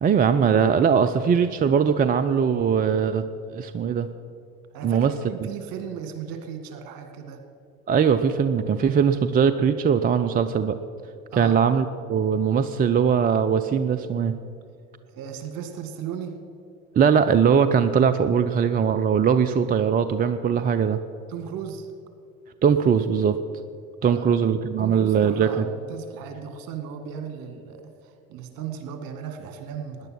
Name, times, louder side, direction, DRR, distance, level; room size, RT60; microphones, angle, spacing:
voice 1, 0.0-3.2 3.5-4.1 4.8-5.1 7.9-10.8 11.3-14.3 17.0-21.0 22.6-23.4 24.0-25.7, right 7 dB, 20° right, 11 dB, 0.5 m, -20 dB
voice 2, 4.7-7.4 11.3-11.6 15.1-16.4 21.3-21.9 24.0-24.3 24.8-30.1, right 8 dB, 55° right, 7 dB, 2.0 m, -36 dB
17.5 x 10.5 x 6.0 m, 2.4 s
figure-of-eight pair, 65°, 42 cm